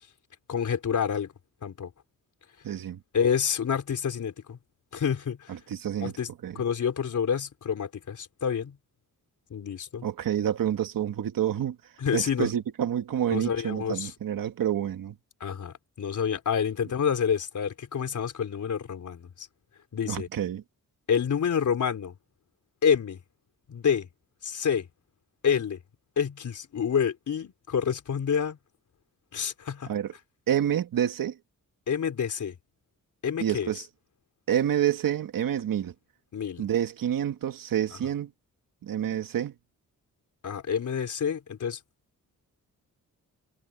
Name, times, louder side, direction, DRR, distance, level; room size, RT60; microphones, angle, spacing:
voice 1, 0.5-1.3 1.6-1.9 3.1-4.6 4.9-5.6 6.0-6.3 6.5-8.8 9.5-10.1 12.0-12.5 13.3-14.1 15.4-19.5 19.9-20.3 21.1-22.1 22.8-23.2 23.7-24.1 24.4-24.9 25.4-25.8 26.2-28.6 29.3-29.9 31.9-32.6 33.2-33.7 36.3-36.6 40.4-41.8, left 7 dB, 65° left, 4.0 m, -28 dB
voice 2, 2.6-3.0 5.5-6.1 6.4-6.6 10.0-11.8 12.1-15.1 20.1-20.6 29.9-30.1 30.5-31.4 33.4-33.8 34.5-35.9 36.6-38.3 38.8-39.5, right 10 dB, 85° right, 1.8 m, -28 dB
wide cardioid pair, 145°, 33 cm